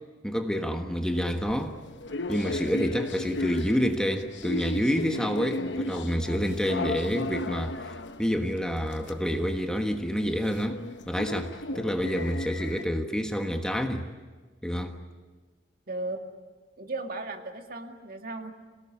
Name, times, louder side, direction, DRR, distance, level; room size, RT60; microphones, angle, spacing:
voice 1, 0.2-1.8 2.3-14.1 14.6-15.0, equal, 5° left, 1.3 m, -28 dB
sound 1, 1.1-12.8, left 1 dB, 70° left, 1.1 m, -35 dB
voice 2, 15.9-16.2 16.8-18.5, right 2 dB, 50° right, 2.2 m, -35 dB
27.5 x 18.0 x 9.9 m
head